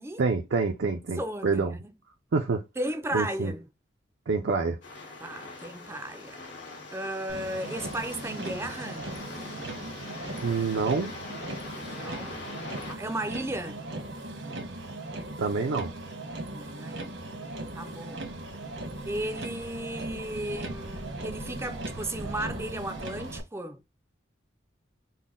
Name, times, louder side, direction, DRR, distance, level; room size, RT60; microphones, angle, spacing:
voice 1, 0.2-1.7 2.3-2.6 3.1-3.5 4.3-4.8 10.4-11.1 15.4-15.9, right 4 dB, 70° right, 0.4 m, -27 dB
voice 2, 1.2-1.9 2.8-3.7 5.2-6.4 6.9-9.1 11.8-12.5 12.9-13.8 16.5-17.3 17.7-18.3 19.1-23.8, right 1 dB, 15° right, 0.4 m, -35 dB
sound 1, 4.8-12.9, left 3 dB, 75° left, 1.6 m, -42 dB
Motor vehicle (road), 7.3-23.4, right 2 dB, 85° right, 1.2 m, -38 dB
3.9 x 2.1 x 3.7 m
head